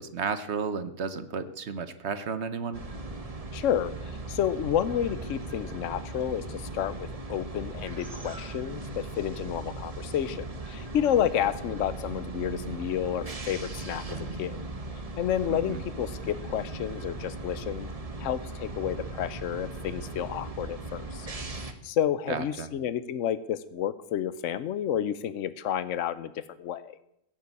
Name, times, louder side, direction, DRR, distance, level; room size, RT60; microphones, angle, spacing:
voice 1, 0.0-2.8 15.5-15.8 22.3-22.7, right 5 dB, 60° right, 12 dB, 1.3 m, -33 dB
sound 1, 2.7-21.7, right 2 dB, 30° right, 1.3 m, -38 dB
voice 2, 3.5-14.6 15.2-17.9 18.2-21.3 21.8-27.0, left 10 dB, 75° left, 14 dB, 1.1 m, -30 dB
16.0 x 8.6 x 8.3 m, 0.79 s
omnidirectional pair, 1.3 m